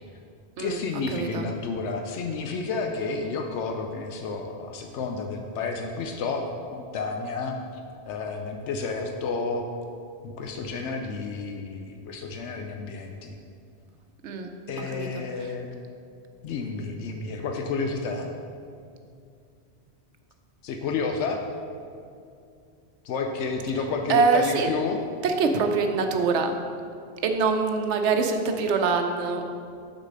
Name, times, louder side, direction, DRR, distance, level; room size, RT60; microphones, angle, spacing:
voice 1, 0.6-6.5 6.7-7.6 8.1-9.6 10.2-13.4 14.7-15.7 16.4-18.3 20.6-21.4 23.0-25.0, left 4 dB, 90° left, 3 dB, 0.9 m, -30 dB
voice 2, 1.1-1.4 14.2-14.5 14.9-15.2 24.1-24.7 25.2-26.6 27.2-29.4, right 4 dB, 85° right, 5 dB, 1.0 m, -24 dB
6.4 x 4.1 x 6.4 m, 2.4 s
omnidirectional pair, 1.2 m